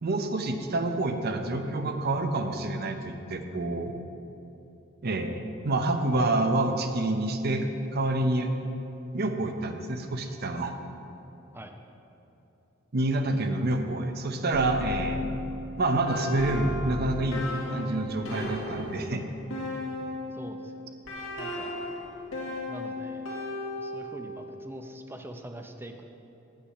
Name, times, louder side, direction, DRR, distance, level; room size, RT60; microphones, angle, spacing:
voice 1, 0.0-3.9 5.0-8.5 9.1-10.7 12.9-15.3 15.8-17.4 17.7-19.2, right 2 dB, 50° right, 6 dB, 0.7 m, -28 dB
sound 1, 14.5-20.5 21.1-24.3, left 2 dB, 80° left, 2.2 m, -35 dB
voice 2, 20.3-20.9 21.4-21.8 22.7-23.3 23.8-26.0, right 1 dB, 10° right, 5 dB, 0.6 m, -43 dB
8.7 x 8.2 x 5.5 m, 2.9 s
head